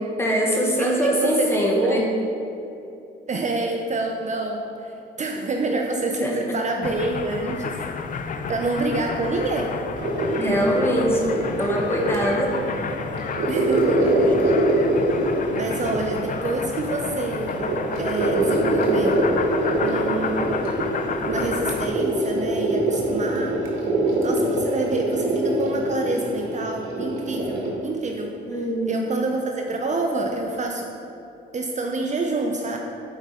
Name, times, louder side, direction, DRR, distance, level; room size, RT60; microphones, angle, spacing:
voice 1, 0.2-2.0 6.2-6.6 10.4-11.3 11.6-12.5 28.4-29.0, equal, 10° left, -2 dB, 1.4 m, -22 dB
voice 2, 0.8-2.1 3.3-7.8 8.5-9.8 13.5-14.1 15.5-19.2 19.8-20.6 21.2-23.6 24.2-30.9 31.5-32.8, right 3 dB, 35° right, 2 dB, 0.6 m, -27 dB
sound 1, 6.8-21.9, left 5 dB, 40° left, 0.5 m, -31 dB
sound 2, 10.0-27.7, right 1 dB, 85° right, 1.2 m, -24 dB
8.0 x 4.8 x 4.2 m, 2.7 s
cardioid pair, 90°, 20 cm